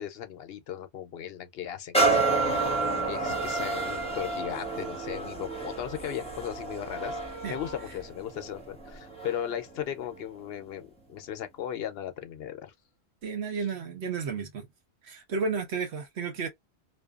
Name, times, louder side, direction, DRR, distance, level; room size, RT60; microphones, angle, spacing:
voice 1, 0.0-2.6 3.0-7.2 7.5-12.7 13.5-13.7, left 10 dB, 70° left, 0.8 m, -37 dB
sound 1, 1.9-9.5 10.1-10.2, right 3 dB, 5° left, 0.8 m, -30 dB
voice 2, 13.2-14.7 15.0-16.5, right 5 dB, 80° right, 1.1 m, -32 dB
2.7 x 2.2 x 2.3 m
omnidirectional pair, 1.1 m